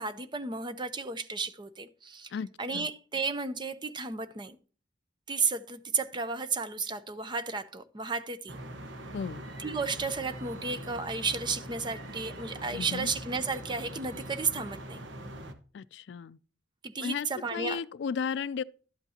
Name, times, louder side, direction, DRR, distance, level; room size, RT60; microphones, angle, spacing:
voice 1, 0.0-2.3 2.6-4.6 5.3-8.6 9.6-15.0 16.8-17.8, right 4 dB, 25° right, 0.6 m, -33 dB
voice 2, 2.3-2.9 9.1-9.4 12.7-13.1 15.7-16.4 17.0-18.6, left 6 dB, 65° left, 0.3 m, -34 dB
sound 1, 8.5-15.5, right 1 dB, 85° right, 1.2 m, -42 dB
12.0 x 8.1 x 2.8 m
head